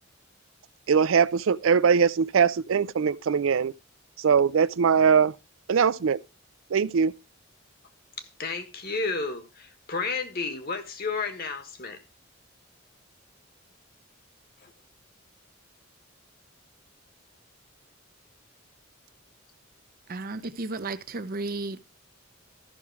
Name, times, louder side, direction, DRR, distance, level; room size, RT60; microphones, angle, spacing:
voice 1, 0.9-3.7 4.2-5.3 5.7-6.2 6.7-7.1, right 6 dB, 75° right, 0.4 m, -21 dB
voice 2, 8.2-12.0 14.6-14.7, left 4 dB, 50° left, 1.4 m, -32 dB
voice 3, 20.1-21.9, right 3 dB, 45° right, 0.7 m, -33 dB
13.0 x 6.1 x 4.7 m
head